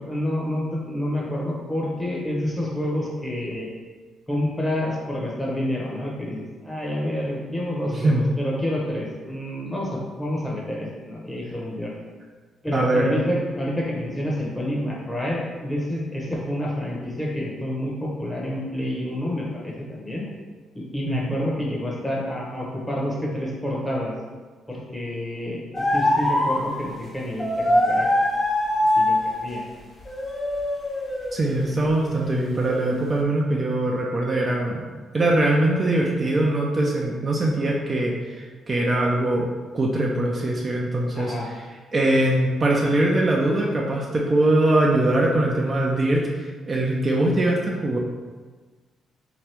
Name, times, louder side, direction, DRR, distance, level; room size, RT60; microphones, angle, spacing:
voice 1, 0.0-3.7 4.3-11.9 12.6-20.3 20.7-24.1 24.7-28.1 29.0-29.6 41.1-41.5, left 1 dB, 10° left, -3 dB, 1.0 m, -28 dB
voice 2, 7.9-8.3 12.7-13.1 21.1-21.3 31.3-34.8 35.1-39.5 39.7-41.3 41.9-48.0, right 1 dB, 30° right, -2 dB, 0.5 m, -22 dB
sound 1, 25.7-26.8 27.4-29.5 30.0-32.3 32.8-33.2, left 1 dB, 30° left, 0.6 m, -23 dB
3.4 x 3.0 x 3.4 m, 1.4 s
cardioid pair, 90°, 0 cm